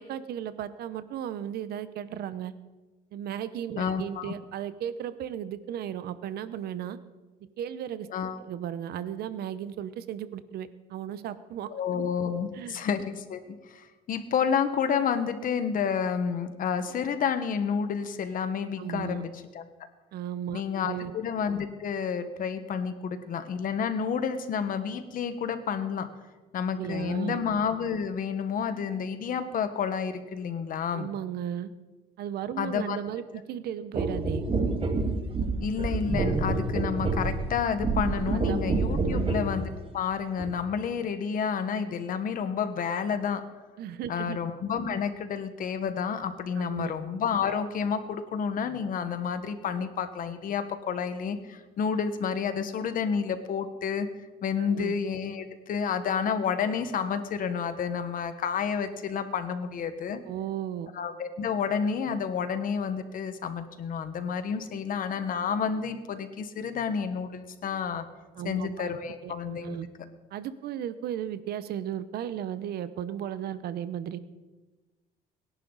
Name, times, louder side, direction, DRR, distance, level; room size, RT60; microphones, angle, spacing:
voice 1, 0.0-2.5 3.1-7.0 7.6-8.1 8.4-12.1 12.5-12.8 18.8-19.2 20.1-21.1 26.8-27.4 30.9-31.7 32.2-34.4 38.3-38.7 39.0-39.4 43.8-44.4 46.6-46.9 54.6-54.9 60.3-60.9 68.4-68.9 69.2-69.9 70.3-74.2, right 10 dB, 70° right, 14 dB, 0.9 m, -35 dB
voice 2, 3.8-4.3 8.1-8.4 11.7-13.4 13.7-19.6 20.5-26.1 26.5-31.1 32.6-33.0 35.6-43.4 44.1-54.1 54.4-60.2 60.9-68.0 68.4-69.8, left 6 dB, 55° left, 9 dB, 1.5 m, -30 dB
sound 1, 33.9-39.5 40.4-40.5, right 3 dB, 30° right, 2.0 m, -28 dB
25.0 x 11.0 x 4.1 m, 1.2 s
cardioid pair, 110°, 17 cm